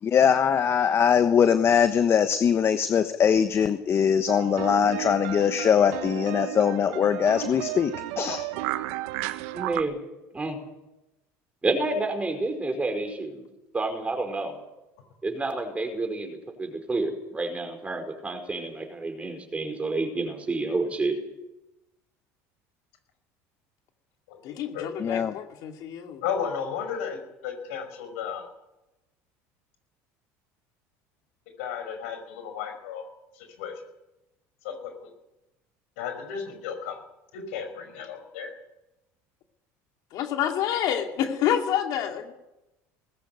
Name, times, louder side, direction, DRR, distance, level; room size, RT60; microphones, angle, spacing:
voice 1, 0.0-8.4 25.0-25.4, left 7 dB, 35° left, 10 dB, 1.2 m, -22 dB
sound 1, 4.3-9.8, right 16 dB, 80° right, 1.1 m, -33 dB
voice 2, 9.5-10.0 10.3-10.6 11.6-13.5 13.7-14.6 15.2-21.2, right 2 dB, 20° right, 5 dB, 4.9 m, -29 dB
voice 3, 24.4-26.2 40.1-42.4, left 10 dB, 60° left, 4 dB, 2.4 m, -28 dB
voice 4, 26.2-28.5 31.6-33.1 33.3-33.7 34.6-35.1 36.0-37.0 37.3-38.5, left 7 dB, 85° left, 7 dB, 5.3 m, -34 dB
19.0 x 15.0 x 9.3 m, 0.96 s
supercardioid pair, 100°, 7 cm